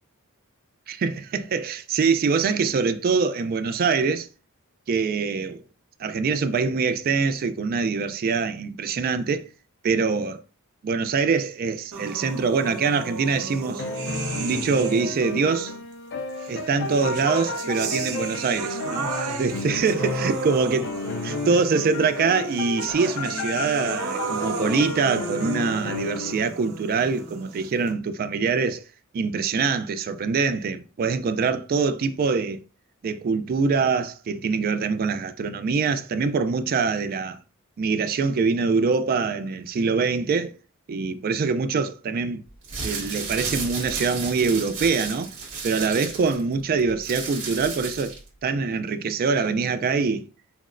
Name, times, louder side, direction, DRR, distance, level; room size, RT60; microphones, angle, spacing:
voice 1, 0.9-4.3 4.9-5.6 6.0-9.5 9.8-10.4 10.8-13.8 14.4-15.7 16.5-20.9 21.2-28.8 29.1-32.6 33.0-37.4 37.8-40.6 40.9-42.4 42.8-45.3 45.6-50.2, right 5 dB, 45° right, 0.3 m, -24 dB
sound 1, 11.9-15.4 16.4-27.9, right 4 dB, 85° right, 0.8 m, -34 dB
sound 2, 13.2-20.6 20.8-26.4, left 3 dB, 55° left, 0.5 m, -32 dB
sound 3, 42.5-48.3, right 4 dB, 60° right, 1.5 m, -33 dB
5.8 x 2.1 x 2.5 m
head